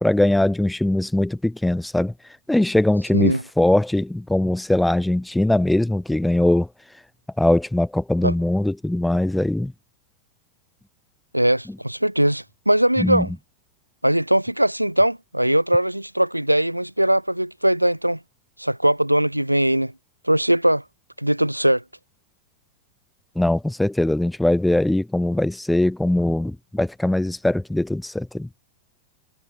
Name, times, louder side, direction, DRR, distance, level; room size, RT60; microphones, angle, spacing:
voice 1, 0.0-2.1 2.5-6.7 7.4-9.7 13.0-13.3 23.4-28.5, left 1 dB, 5° left, 0.3 m, -21 dB
voice 2, 11.3-13.3 14.0-18.2 18.6-19.9 20.2-20.8 21.2-21.8, right 1 dB, 90° right, 1.2 m, -20 dB
figure-of-eight pair, 90°, 0 cm